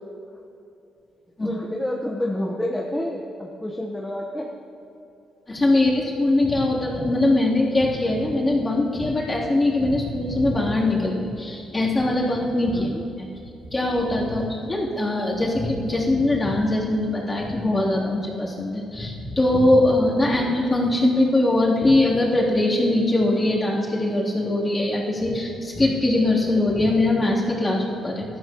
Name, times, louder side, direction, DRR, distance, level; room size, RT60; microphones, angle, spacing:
voice 1, 1.4-4.5 12.7-13.0 20.2-20.5, left 1 dB, 5° left, -2 dB, 1.2 m, -29 dB
voice 2, 5.5-12.9 13.2-13.3 13.7-28.2, left 2 dB, 20° left, -5 dB, 3.3 m, -21 dB
19.0 x 12.5 x 3.1 m, 2.7 s
cardioid pair, 90°, 0 cm